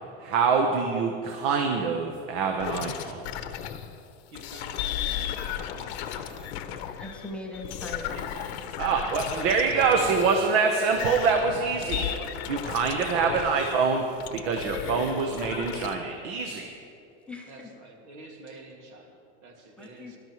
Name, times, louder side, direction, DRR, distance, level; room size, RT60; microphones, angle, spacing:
voice 1, 0.2-3.2 8.8-12.1 12.5-16.7, right 5 dB, 60° right, 3 dB, 1.1 m, -25 dB
sound 1, 2.6-3.9 4.3-10.5 10.9-13.8 14.2-15.9, left 10 dB, 60° left, 0.8 m, -35 dB
voice 2, 4.3-6.9 8.1-8.7 12.0-12.6 17.4-20.2, right 2 dB, 75° right, 1 dB, 2.2 m, -47 dB
voice 3, 7.0-8.3 17.3-17.8 19.8-20.2, left 2 dB, 5° left, 0 dB, 0.6 m, -40 dB
18.5 x 12.0 x 3.1 m, 2.7 s
supercardioid pair, 165°, 35 cm